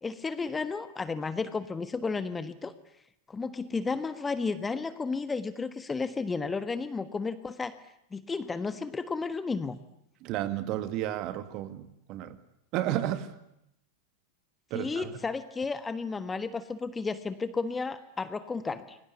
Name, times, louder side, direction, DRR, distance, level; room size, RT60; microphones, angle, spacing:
voice 1, 0.0-2.7 3.3-7.7 8.1-9.8 14.7-19.0, left 4 dB, 15° left, 12 dB, 1.4 m, -33 dB
voice 2, 10.2-12.4 12.7-13.3 14.7-15.1, right 12 dB, 40° right, 11 dB, 2.3 m, -32 dB
29.5 x 23.0 x 8.4 m, 0.80 s
figure-of-eight pair, 90°, 0 cm